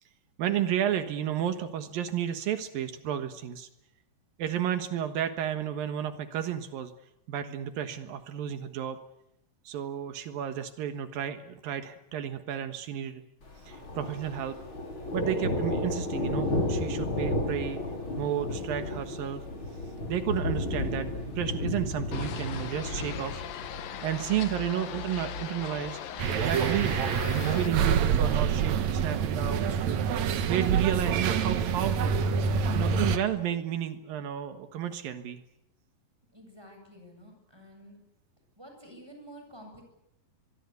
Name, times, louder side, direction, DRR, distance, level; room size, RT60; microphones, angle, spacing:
voice 1, 0.4-3.7 4.4-6.9 7.3-9.0 9.6-13.2 13.7-14.6 15.1-17.8 18.2-19.4 20.1-23.4 24.0-26.0 26.4-27.0 27.5-30.0 30.5-32.2 32.7-35.4, right 10 dB, 85° right, 9 dB, 3.2 m, -32 dB
Thunder, 13.4-29.0, left 1 dB, 35° left, 6.4 m, -34 dB
sound 1, 22.1-27.7, left 10 dB, 80° left, 3.1 m, -40 dB
sound 2, 26.2-33.2, right 7 dB, 60° right, 2.3 m, -26 dB
voice 2, 36.3-38.0 38.6-39.8, equal, 5° right, 4 dB, 7.6 m, -50 dB
23.5 x 23.5 x 8.3 m, 0.83 s
omnidirectional pair, 4.0 m